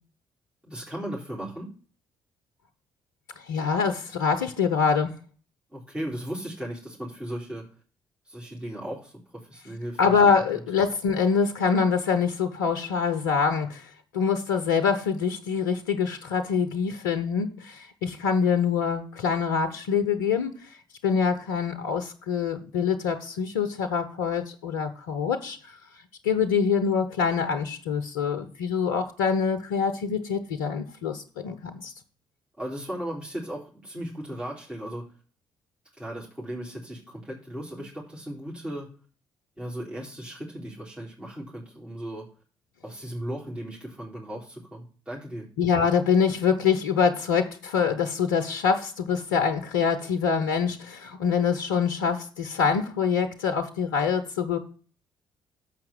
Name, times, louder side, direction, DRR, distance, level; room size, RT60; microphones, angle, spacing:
voice 1, 0.6-1.7 5.7-7.6 8.2-10.0 32.6-35.0 36.0-38.9 39.6-42.3 42.8-45.5, right 1 dB, 10° right, -5 dB, 4.0 m, -36 dB
voice 2, 3.4-5.1 10.0-25.8 26.2-31.9 45.6-54.6, left 6 dB, 80° left, 7 dB, 0.8 m, -25 dB
7.3 x 5.8 x 7.7 m, 0.40 s
hypercardioid pair, 45°, 11 cm